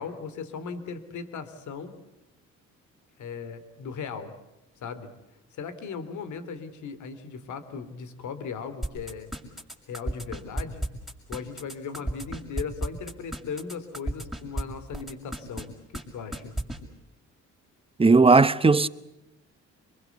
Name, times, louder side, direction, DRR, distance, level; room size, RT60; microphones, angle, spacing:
voice 1, 0.0-1.9 3.2-4.3 4.8-5.1 5.5-9.3 9.9-10.9 11.3-15.7 16.1-16.5, left 5 dB, 75° left, 3.2 m, -37 dB
sound 1, 8.8-14.6 14.9-15.7 15.9-16.0 16.3-16.8, right 1 dB, ahead, 6.5 m, -31 dB
voice 2, 18.0-18.9, right 4 dB, 20° right, 1.0 m, -17 dB
25.5 x 23.0 x 8.2 m
cardioid pair, 90°, 30 cm